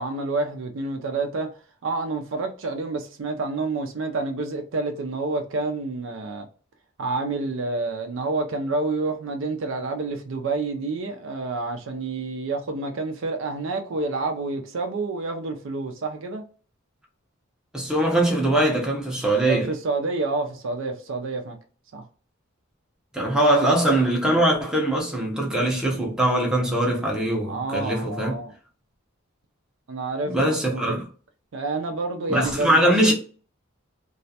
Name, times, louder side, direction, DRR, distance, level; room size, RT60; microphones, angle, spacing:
voice 1, 0.0-1.5 1.8-6.5 7.0-16.4 19.4-21.6 21.9-22.0 27.4-28.5 29.9-31.0 31.5-32.8, right 3 dB, 65° right, 0.4 m, -28 dB
voice 2, 17.7-19.7 23.1-28.4 30.3-31.0 32.3-33.1, right 1 dB, 5° right, 0.6 m, -22 dB
2.4 x 2.1 x 2.6 m
head